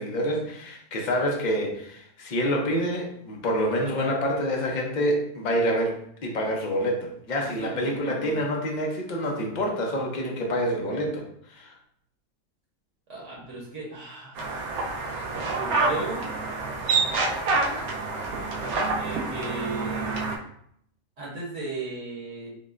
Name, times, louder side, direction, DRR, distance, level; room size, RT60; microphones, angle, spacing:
voice 1, 0.0-11.7, equal, 45° left, 0 dB, 0.6 m, -27 dB
voice 2, 7.3-8.4 13.1-14.4 15.6-16.3 19.0-20.2 21.2-22.5, right 3 dB, 60° right, -4 dB, 1.3 m, -36 dB
sound 1, 14.4-20.4, right 3 dB, 85° right, 1.1 m, -27 dB
5.4 x 2.1 x 2.4 m, 0.68 s
omnidirectional pair, 1.5 m